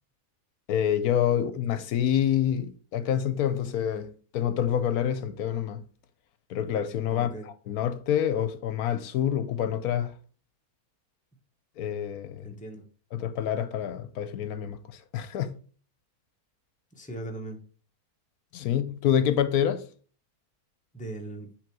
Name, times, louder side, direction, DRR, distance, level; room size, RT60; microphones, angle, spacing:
voice 1, 0.7-5.8 6.5-7.3 7.7-10.1 11.8-12.5 13.1-15.6 18.5-19.8, left 9 dB, 75° left, 1.1 m, -27 dB
voice 2, 7.1-7.5 12.4-12.8 16.9-17.6 20.9-21.5, right 2 dB, 5° left, 1.0 m, -39 dB
7.6 x 3.5 x 4.7 m
omnidirectional pair, 1.6 m